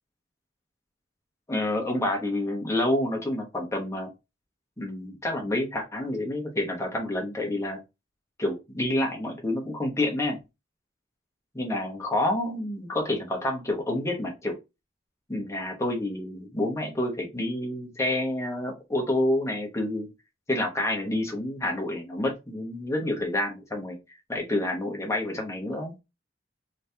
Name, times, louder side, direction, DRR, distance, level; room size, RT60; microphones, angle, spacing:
voice 1, 1.5-4.1 4.8-7.8 8.4-10.4 11.5-14.5 15.3-20.1 20.5-24.0 24.3-25.9, left 1 dB, 15° left, 1 dB, 1.0 m, -28 dB
3.2 x 2.7 x 3.3 m, 0.24 s
head